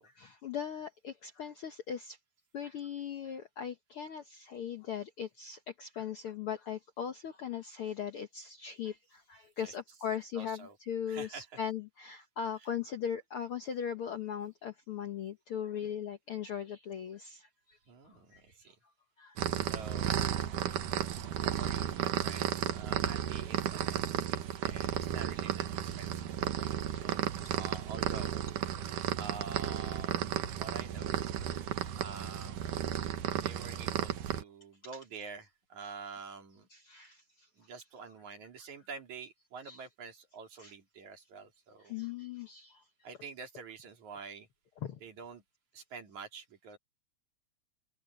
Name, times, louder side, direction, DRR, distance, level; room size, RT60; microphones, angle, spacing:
voice 1, 0.2-2.2 2.5-17.8 18.1-19.4 22.6-22.8 26.5-26.6 27.1-27.6 31.4-31.6 33.4-33.5 36.7-37.5 39.6-39.8 40.6-40.7 41.8-42.8 44.8-45.0, left 8 dB, 60° left, 1.6 m, -39 dB
voice 2, 9.6-10.0 10.3-10.8 11.1-11.6 12.5-12.7 17.9-18.8 19.6-20.6 21.4-28.4 29.2-31.2 32.0-32.8 33.3-36.7 37.6-41.9 43.0-44.5 45.0-45.4 45.7-46.8, right 5 dB, 65° right, 4.5 m, -48 dB
sound 1, 19.4-34.4, right 10 dB, 90° right, 2.9 m, -34 dB
open air
omnidirectional pair, 3.6 m